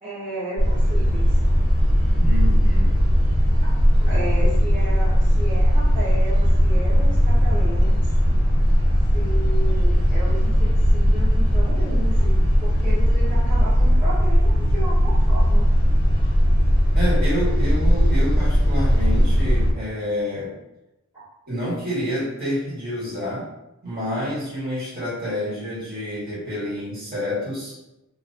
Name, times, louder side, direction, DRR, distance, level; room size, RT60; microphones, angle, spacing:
voice 1, 0.0-1.4 4.0-7.9 9.1-15.7 16.2-16.3 21.1-21.2, right 1 dB, 20° right, -16 dB, 1.1 m, -33 dB
sound 1, 0.6-19.7, equal, 55° left, 1.0 m, -18 dB
voice 2, 2.2-3.1 16.9-20.5 21.5-23.5 23.8-27.8, left 1 dB, 45° right, -8 dB, 1.4 m, -28 dB
2.9 x 2.6 x 2.6 m, 0.95 s
head